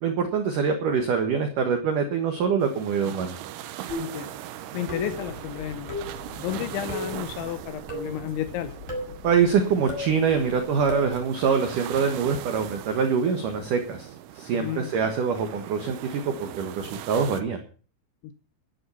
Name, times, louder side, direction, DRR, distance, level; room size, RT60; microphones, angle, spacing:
voice 1, 0.0-3.4 9.2-14.1 14.3-17.6, right 6 dB, 60° right, 5 dB, 2.3 m, -24 dB
sound 1, 2.6-17.4, right 12 dB, 85° right, 3.5 m, -40 dB
sound 2, 3.9-4.3 4.9-5.3 5.9-6.2 6.9-7.2 7.9-8.2 8.9-9.2 9.9-10.1 10.9-11.1, left 1 dB, 5° right, 6.5 m, -33 dB
voice 2, 4.0-4.3 4.7-6.0 6.4-8.7 14.5-14.9 18.2-18.3, left 12 dB, 80° left, 11 dB, 3.0 m, -32 dB
sound 3, 4.9-11.2, left 6 dB, 50° left, 6.1 m, -46 dB
11.0 x 11.0 x 7.0 m, 0.39 s
omnidirectional pair, 5.6 m